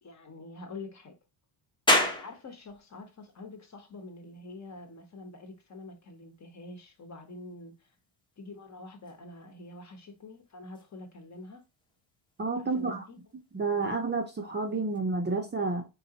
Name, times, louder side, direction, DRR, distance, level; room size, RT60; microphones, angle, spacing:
voice 1, 0.0-1.1 2.2-7.9 8.4-11.6 12.5-13.2, left 2 dB, 35° left, 1.1 m, -46 dB
sound 1, 1.9-15.0, left 1 dB, 10° left, 0.8 m, -37 dB
voice 2, 12.4-13.0 13.5-15.8, right 3 dB, 20° right, 0.7 m, -30 dB
4.2 x 3.8 x 2.9 m
cardioid pair, 135°, 50 cm